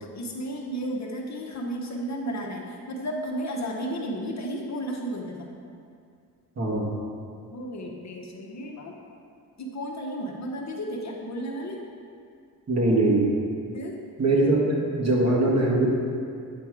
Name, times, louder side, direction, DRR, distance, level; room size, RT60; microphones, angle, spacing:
voice 1, 0.0-5.5 7.5-9.0 9.6-11.8 13.7-14.0, right 1 dB, 45° left, 0 dB, 1.0 m, -33 dB
voice 2, 6.6-6.9 12.7-13.3 14.2-15.9, right 2 dB, 45° right, -4 dB, 1.7 m, -22 dB
8.6 x 3.5 x 4.8 m, 2.4 s
cardioid pair, 70°, 37 cm